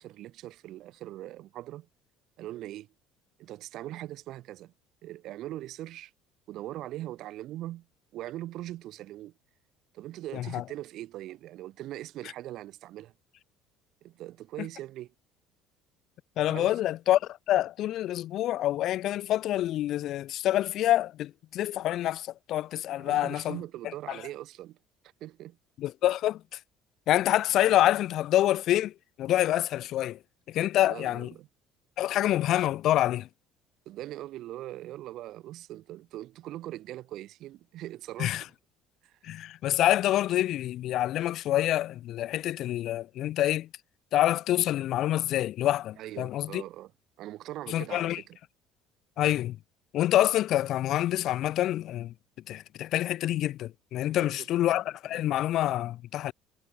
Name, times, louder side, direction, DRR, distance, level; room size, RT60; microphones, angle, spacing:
voice 1, 0.0-1.9 2.4-2.9 3.4-4.7 5.0-6.1 6.5-7.9 8.1-9.3 9.9-13.1 14.0-15.1 16.5-16.8 23.0-24.8 25.2-25.6 30.9-31.5 33.9-38.5 39.0-39.2 46.0-46.9 47.2-48.4 54.3-54.5, right 14 dB, 60° right, 2.1 m, -41 dB
voice 2, 10.3-10.6 16.4-23.6 24.1-24.2 25.8-26.6 27.1-28.9 29.2-30.2 30.5-31.3 32.0-33.3 38.2-38.4 39.2-43.7 44.1-46.6 47.7-48.2 49.2-49.6 49.9-52.1 52.5-56.3, left 13 dB, 60° left, 0.5 m, -27 dB
cardioid pair, 115°, 0 cm